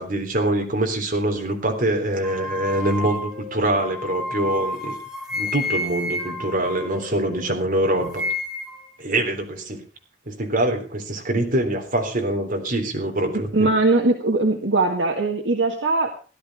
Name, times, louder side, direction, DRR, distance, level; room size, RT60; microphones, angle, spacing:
voice 1, 0.0-4.9 5.3-8.2 9.0-9.8 10.3-13.7, right 1 dB, 45° right, 3 dB, 3.6 m, -24 dB
sound 1, 2.2-7.5 7.8-8.9, left 2 dB, 5° right, 3.0 m, -31 dB
voice 2, 13.5-16.1, right 2 dB, 70° right, 3 dB, 1.7 m, -20 dB
16.0 x 12.0 x 4.9 m, 0.36 s
head